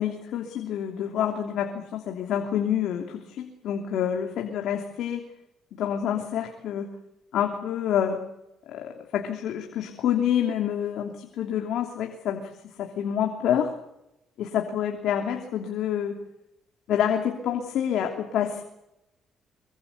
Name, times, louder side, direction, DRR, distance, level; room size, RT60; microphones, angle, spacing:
voice 1, 0.0-5.2 5.7-6.9 7.3-8.2 8.7-12.5 12.8-13.7 14.4-16.2 16.9-18.6, left 9 dB, 70° left, 3 dB, 3.0 m, -27 dB
24.5 x 23.0 x 8.2 m, 0.87 s
cardioid pair, 115°, 0 cm